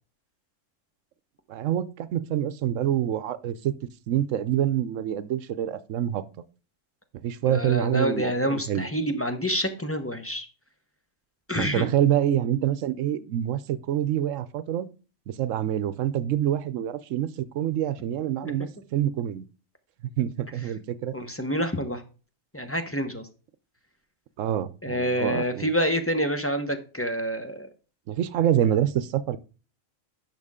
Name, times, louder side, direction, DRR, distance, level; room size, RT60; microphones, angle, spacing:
voice 1, 1.5-3.7 4.1-6.2 7.2-8.9 11.6-14.9 15.3-19.4 20.2-21.1 24.4-25.7 28.1-29.4, right 11 dB, 80° right, 1.0 m, -26 dB
voice 2, 7.4-10.5 11.5-11.9 18.4-18.7 21.1-22.0 22.5-23.3 24.8-27.7, equal, 10° left, 0.9 m, -27 dB
10.5 x 6.1 x 3.7 m
omnidirectional pair, 1.3 m